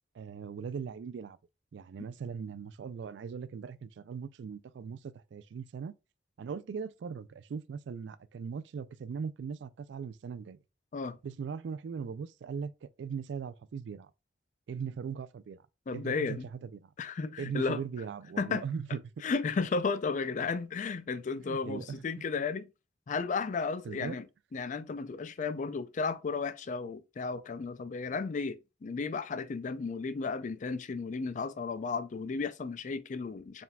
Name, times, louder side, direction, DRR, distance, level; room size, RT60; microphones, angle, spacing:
voice 1, 0.1-1.4 1.7-5.9 6.4-10.6 11.2-14.1 14.7-15.6 15.9-16.9 17.4-19.0 21.4-22.4 23.8-24.2, right 6 dB, 70° right, 0.3 m, -39 dB
voice 2, 15.9-16.5 17.0-17.8 18.4-18.6 19.2-22.7 23.1-24.2 24.5-33.6, left 4 dB, 40° left, 0.4 m, -34 dB
4.5 x 3.6 x 2.2 m
head